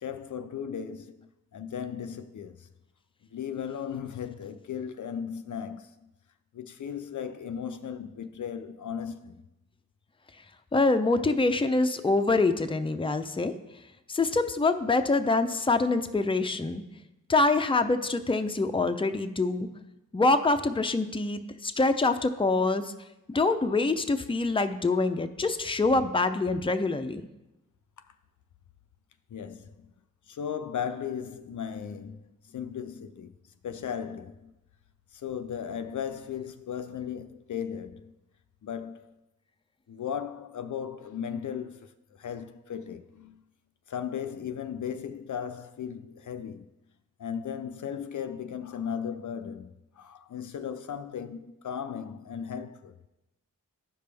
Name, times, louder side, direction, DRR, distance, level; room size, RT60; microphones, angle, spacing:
voice 1, 0.0-2.7 3.3-6.1 6.5-9.3 29.3-29.9 30.3-33.3 33.6-34.5 35.1-38.1 38.6-39.1 39.9-41.9 42.2-43.4 43.9-46.7 47.2-52.9, left 8 dB, 65° left, 0.5 m, -36 dB
voice 2, 10.7-13.5 14.1-16.8 17.3-19.7 20.1-22.9 23.3-27.3, left 3 dB, 15° left, 0.6 m, -25 dB
12.0 x 5.1 x 3.4 m
cardioid pair, 50°, 33 cm